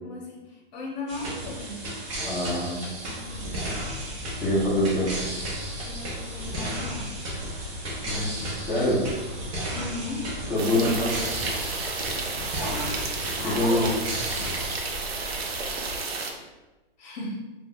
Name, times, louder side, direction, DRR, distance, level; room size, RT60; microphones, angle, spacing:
voice 1, 0.0-0.4 0.7-1.8 3.0-3.6 5.8-7.7 9.7-10.3 12.4-12.9 13.4-14.2 17.0-17.4, left 1 dB, 45° left, -2 dB, 0.8 m, -36 dB
sound 1, 1.1-14.8, right 1 dB, 35° right, 0.6 m, -34 dB
voice 2, 2.2-2.8 4.4-5.1 8.0-8.3 8.7-9.0 10.5-11.2 13.4-13.9, left 1 dB, 5° left, -10 dB, 0.4 m, -24 dB
sound 2, 3.2-16.0, left 1 dB, 70° left, 0.5 m, -40 dB
sound 3, 10.6-16.3, right 4 dB, 80° right, 0.6 m, -32 dB
2.3 x 2.0 x 3.5 m, 1.1 s
hypercardioid pair, 145°, 30 cm